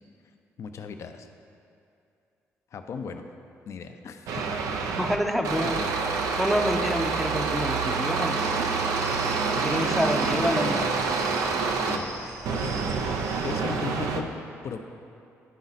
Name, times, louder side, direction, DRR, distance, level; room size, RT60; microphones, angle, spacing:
voice 1, 0.6-1.3 2.7-3.2 3.7-4.4 4.8-5.0 5.6-5.9 10.4-10.9 11.9-12.1 12.5-12.8 13.4-14.3 14.6-14.8, left 6 dB, 60° left, 7 dB, 0.5 m, -36 dB
sound 1, 4.3-5.2 5.4-12.0 12.5-14.2, right 4 dB, 80° right, 0.5 m, -27 dB
voice 2, 5.0-5.8 6.4-8.4 9.6-10.8, equal, ahead, 4 dB, 0.6 m, -27 dB
sound 2, 8.4-13.6, right 3 dB, 55° right, 0.8 m, -41 dB
11.0 x 4.1 x 4.1 m, 2.6 s
supercardioid pair, 70°, 6 cm